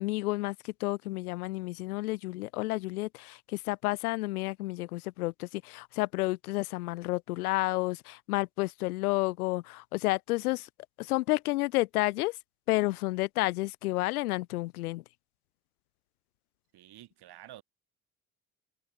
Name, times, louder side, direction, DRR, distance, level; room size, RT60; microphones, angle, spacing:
voice 1, 0.0-10.7 11.0-12.4 12.7-15.0, left 20 dB, 75° left, 1.0 m, -31 dB
voice 2, 16.7-17.6, right 14 dB, 60° right, 7.4 m, -50 dB
figure-of-eight pair, 50°, 45 cm